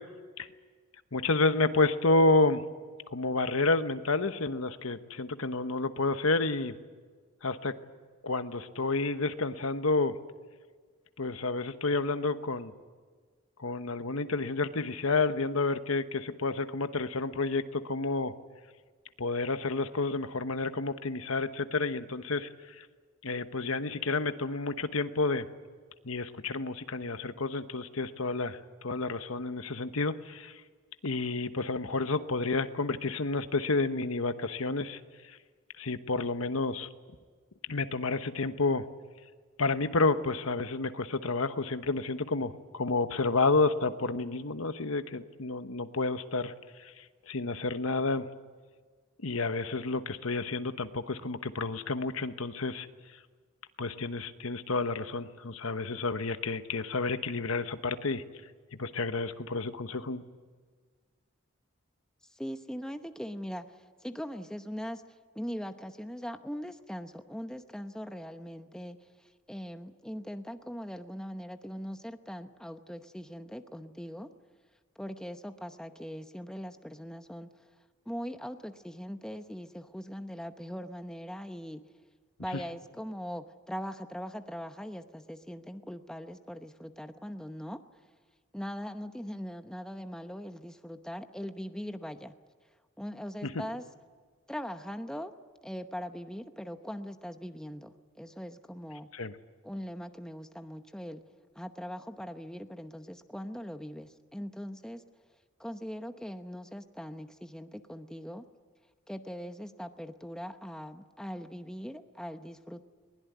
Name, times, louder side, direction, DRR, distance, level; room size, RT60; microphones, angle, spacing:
voice 1, 1.1-2.6 3.1-6.7 7.4-7.7 8.2-10.2 11.2-12.7 13.6-18.3 19.2-22.5 22.8-22.9 23.2-25.5 26.0-30.5 31.0-35.0 35.8-36.9 37.7-38.8 39.6-46.5 46.8-48.2 49.2-52.9 53.8-58.2 58.8-60.2 99.1-99.3, left 3 dB, 80° left, 10 dB, 1.2 m, -30 dB
voice 2, 62.3-65.0 65.3-74.3 75.0-77.5 78.1-81.8 82.4-87.8 88.5-92.3 93.0-93.8 94.5-95.3 95.6-99.1 99.6-101.2 101.6-105.0 105.6-108.4 109.1-112.8, equal, 5° left, 7 dB, 0.8 m, -41 dB
22.0 x 20.5 x 9.4 m, 1.5 s
head